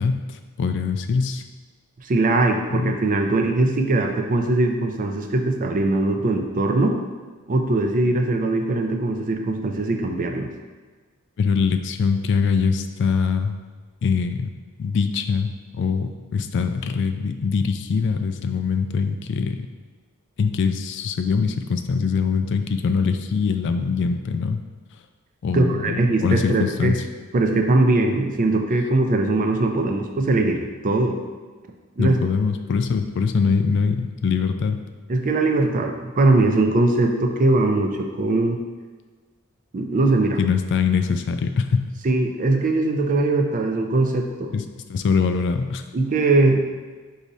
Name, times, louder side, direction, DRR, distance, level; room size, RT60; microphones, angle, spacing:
voice 1, 0.0-1.4 2.7-2.9 11.4-13.6 14.0-14.5 14.8-19.7 20.4-24.6 25.4-27.0 32.0-34.8 40.4-41.9 44.5-45.8, left 5 dB, 55° left, 8 dB, 0.3 m, -23 dB
voice 2, 2.0-7.0 7.5-10.5 25.5-26.9 27.3-31.2 32.0-32.2 35.1-38.6 39.7-40.4 42.0-44.5 45.9-46.6, right 2 dB, 40° right, 3 dB, 0.4 m, -21 dB
4.8 x 2.7 x 4.0 m, 1.4 s
head